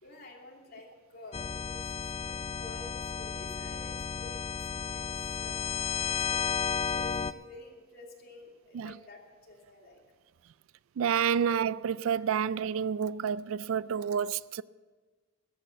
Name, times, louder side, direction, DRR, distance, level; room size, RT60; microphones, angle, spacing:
voice 1, 0.0-5.1 5.4-10.0, left 2 dB, 50° left, 2.8 m, -51 dB
sound 1, 1.3-7.3, left 6 dB, 30° left, 0.3 m, -33 dB
voice 2, 11.0-14.6, right 7 dB, 80° right, 0.3 m, -29 dB
13.5 x 8.2 x 8.0 m
head